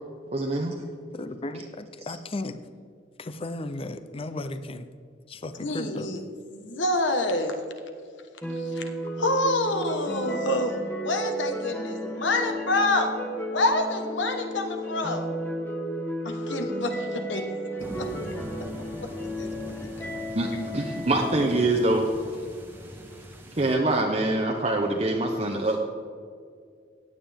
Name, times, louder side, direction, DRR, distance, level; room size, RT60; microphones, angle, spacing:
voice 1, 0.3-0.7 20.3-22.1 23.5-25.8, right 2 dB, 35° right, 0 dB, 0.8 m, -24 dB
voice 2, 1.1-2.6 3.2-4.8 5.3-6.1, left 2 dB, 30° left, 11 dB, 0.5 m, -35 dB
voice 3, 5.6-6.2 6.5-7.6 8.5-8.8 9.2-13.1 13.5-15.3 16.2-17.4 18.0-18.1 19.0-19.1 19.4-20.1, left 2 dB, 75° left, 5 dB, 1.3 m, -27 dB
sound 1, 8.4-21.7, equal, 10° left, 1.2 m, -33 dB
sound 2, 17.8-23.8, equal, 10° right, 1.2 m, -42 dB
16.0 x 9.3 x 3.5 m, 2.2 s
head